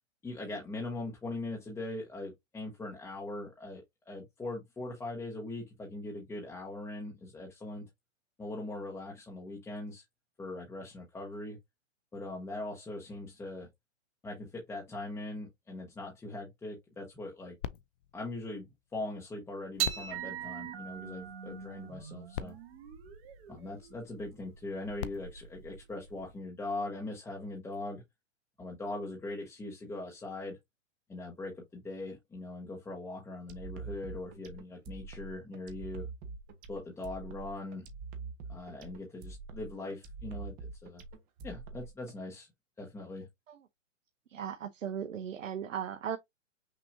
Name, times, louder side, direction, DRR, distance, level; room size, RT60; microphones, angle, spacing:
voice 1, 0.2-7.9 8.4-10.0 10.4-11.6 12.1-13.7 14.2-17.6 18.1-18.7 18.9-22.6 23.5-28.0 28.6-30.6 31.1-36.1 36.7-37.9 38.5-41.0 41.4-42.5 42.8-43.3, left 2 dB, 5° left, 1.0 m, -41 dB
sound 1, 17.6-19.2 19.8-21.4 22.0-22.1 22.3-23.9 24.7-26.6 27.3-27.4, left 10 dB, 45° left, 0.6 m, -45 dB
sound 2, 19.8-26.3, right 10 dB, 50° right, 1.6 m, -41 dB
sound 3, 33.5-42.1, right 4 dB, 20° right, 0.8 m, -44 dB
voice 2, 44.3-46.2, right 8 dB, 85° right, 0.7 m, -37 dB
6.0 x 2.9 x 2.6 m
hypercardioid pair, 130°, 38 cm